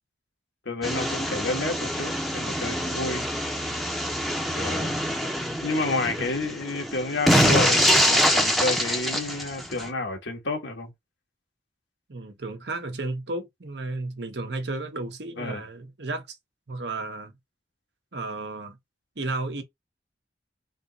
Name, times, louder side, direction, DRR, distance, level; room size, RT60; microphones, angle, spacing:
voice 1, 0.6-3.3 4.5-5.0 5.6-10.9 15.4-15.6, left 2 dB, 90° left, 1.4 m, -30 dB
sound 1, 0.8-9.9, equal, ahead, 0.7 m, -25 dB
voice 2, 4.9-5.2 6.2-6.3 12.1-16.4 16.7-17.3 18.1-18.8 19.2-19.6, right 2 dB, 70° right, 1.0 m, -33 dB
3.5 x 2.9 x 3.9 m
head